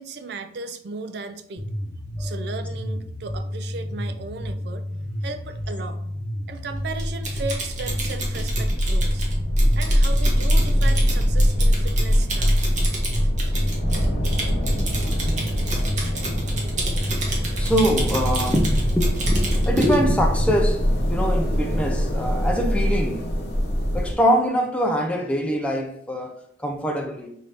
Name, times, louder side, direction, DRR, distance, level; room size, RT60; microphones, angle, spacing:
voice 1, 0.0-1.7 2.2-4.9 5.2-6.0 6.5-9.3 9.8-12.6, right 3 dB, 60° right, 0.4 m, -36 dB
sound 1, 1.6-20.6, equal, 85° left, 0.9 m, -31 dB
sound 2, 7.0-24.1, equal, 60° left, 1.0 m, -23 dB
Typing, 7.0-20.0, right 2 dB, 40° right, 1.0 m, -32 dB
voice 2, 17.6-23.3 23.9-27.4, equal, 5° left, 0.4 m, -24 dB
5.6 x 2.6 x 3.3 m
head